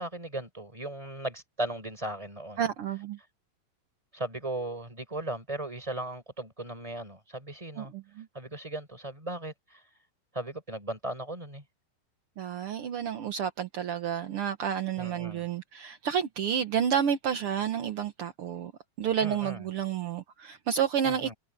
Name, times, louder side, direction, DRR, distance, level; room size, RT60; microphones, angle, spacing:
voice 1, 0.0-2.6 4.1-7.9 8.3-9.8 10.3-11.6 14.9-15.5 19.2-19.7 21.0-21.3, right 1 dB, 10° right, 4.6 m, -37 dB
voice 2, 2.6-3.2 7.8-8.3 12.4-18.7 19.0-21.3, right 8 dB, 65° right, 1.4 m, -30 dB
omnidirectional pair, 4.1 m